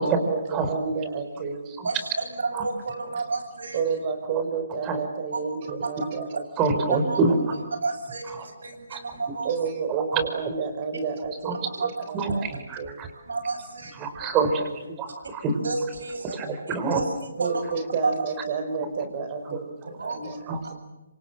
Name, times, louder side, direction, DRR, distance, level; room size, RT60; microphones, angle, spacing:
voice 1, 0.0-1.6 3.7-6.8 9.4-12.5 12.8-13.0 16.2-16.3 17.4-20.7, right 5 dB, 35° right, 8 dB, 4.2 m, -30 dB
voice 2, 2.4-3.8 5.3-5.4 7.1-7.2 7.8-9.5 11.8-11.9 13.3-13.9 14.2-14.4 15.6-16.4 16.7-17.6 18.0-18.1 20.0-20.2, right 3 dB, 75° right, 7 dB, 7.8 m, -30 dB
voice 3, 6.6-7.4 8.4-8.5 8.9-9.0 9.9-10.2 11.5-11.6 12.1-13.1 14.0-15.6 16.3-17.0 20.5-20.7, right 4 dB, 20° right, 7 dB, 5.2 m, -26 dB
27.0 x 26.5 x 7.8 m, 1.1 s
hypercardioid pair, 150°, 0 cm